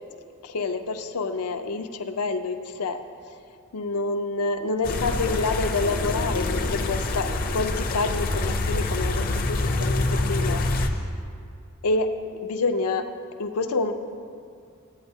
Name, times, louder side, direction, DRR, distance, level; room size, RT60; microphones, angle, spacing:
voice 1, 0.4-3.0 3.7-10.6 10.9-11.0 11.8-13.0 13.4-13.9, left 3 dB, 85° left, 7 dB, 0.6 m, -28 dB
sound 1, 4.8-10.9, left 2 dB, 40° left, 0.5 m, -26 dB
14.5 x 8.7 x 2.7 m, 2.4 s
head